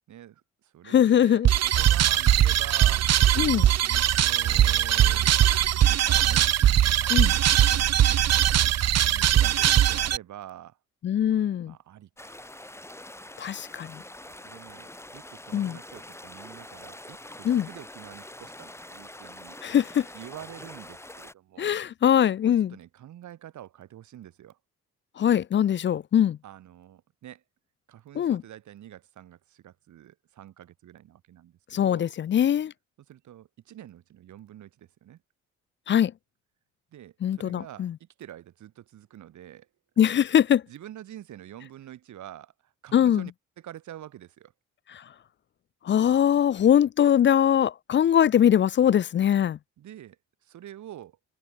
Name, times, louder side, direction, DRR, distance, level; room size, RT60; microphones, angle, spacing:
voice 1, 0.1-3.1 3.4-5.2 6.0-6.5 7.0-8.0 9.1-10.8 11.6-12.5 14.3-19.6 20.1-21.8 22.4-24.6 26.4-27.4 27.9-32.1 33.1-35.2 36.9-39.7 40.7-43.3 43.6-44.5 48.8-49.0 49.8-51.2, right 12 dB, 75° right, 4.4 m, -46 dB
voice 2, 0.9-1.5 3.4-3.7 7.1-7.3 11.0-11.7 13.4-14.0 15.5-15.8 17.4-17.7 19.6-20.1 21.6-22.7 25.2-26.4 28.2-28.4 31.7-32.7 35.9-36.1 37.2-37.9 40.0-40.6 42.9-43.2 45.8-49.6, left 9 dB, 40° left, 0.4 m, -22 dB
sound 1, 1.4-10.2, right 11 dB, 55° right, 1.0 m, -21 dB
sound 2, 12.2-21.3, left 1 dB, 10° left, 5.9 m, -45 dB
cardioid pair, 90°, 30 cm